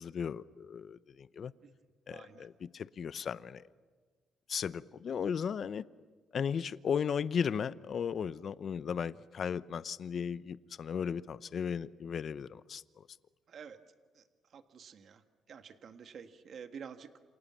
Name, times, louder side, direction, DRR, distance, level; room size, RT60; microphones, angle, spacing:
voice 1, 0.0-1.5 2.1-3.7 4.5-5.8 6.3-13.1, left 7 dB, 55° left, 16 dB, 0.8 m, -36 dB
voice 2, 2.1-2.5 13.5-13.8 14.1-14.2 14.5-15.2 15.5-17.2, right 7 dB, 55° right, 8 dB, 1.6 m, -49 dB
28.5 x 28.0 x 7.5 m, 1.5 s
cardioid pair, 90°, 0 cm